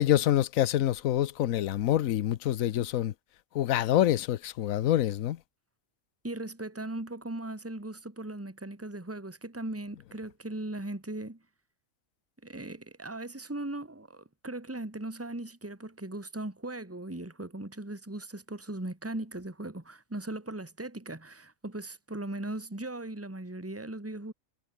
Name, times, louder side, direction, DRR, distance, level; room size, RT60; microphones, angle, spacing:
voice 1, 0.0-3.1 3.5-5.4, left 12 dB, 85° left, 1.1 m, -26 dB
voice 2, 6.2-11.4 12.4-24.3, right 2 dB, 10° right, 2.1 m, -38 dB
omnidirectional pair, 1.4 m